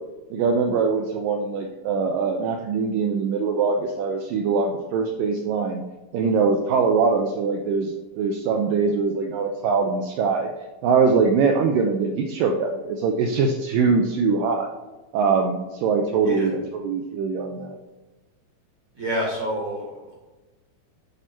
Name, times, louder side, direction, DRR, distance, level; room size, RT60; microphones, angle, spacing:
voice 1, 0.3-5.8 6.1-10.5 10.8-14.7 15.1-17.8, right 5 dB, 85° right, 3 dB, 2.0 m, -22 dB
voice 2, 18.9-20.2, right 1 dB, 45° right, -3 dB, 1.8 m, -28 dB
9.1 x 4.5 x 4.4 m, 1.1 s
omnidirectional pair, 4.5 m